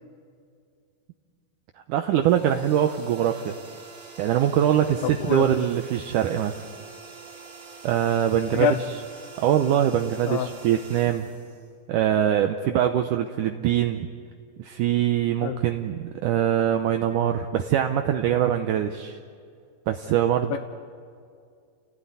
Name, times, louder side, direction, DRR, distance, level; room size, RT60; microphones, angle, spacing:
voice 1, 1.9-3.6 4.2-6.5 7.8-8.8 9.4-11.3 11.9-14.1 14.6-19.2 19.9-20.6, right 10 dB, 75° right, 6 dB, 2.1 m, -23 dB
sound 1, 2.2-12.1, right 4 dB, 30° right, 3.7 m, -45 dB
voice 2, 5.0-5.4 8.5-8.8 10.3-10.5 15.4-15.6 20.5-20.6, left 8 dB, 80° left, 8 dB, 2.5 m, -25 dB
29.5 x 17.0 x 9.6 m, 2.2 s
omnidirectional pair, 4.3 m